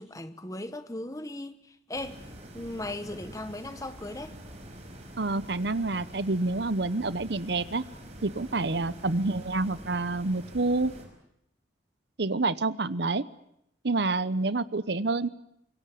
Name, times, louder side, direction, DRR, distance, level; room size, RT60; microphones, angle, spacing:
voice 1, 0.0-2.3 2.5-4.4, left 1 dB, 20° left, 1.3 m, -37 dB
sound 1, 1.9-11.0, equal, 35° right, 6.0 m, -46 dB
voice 2, 5.2-7.8 8.2-10.9 12.2-13.3 13.8-15.3, right 3 dB, 65° right, 1.0 m, -28 dB
25.0 x 22.5 x 8.6 m
head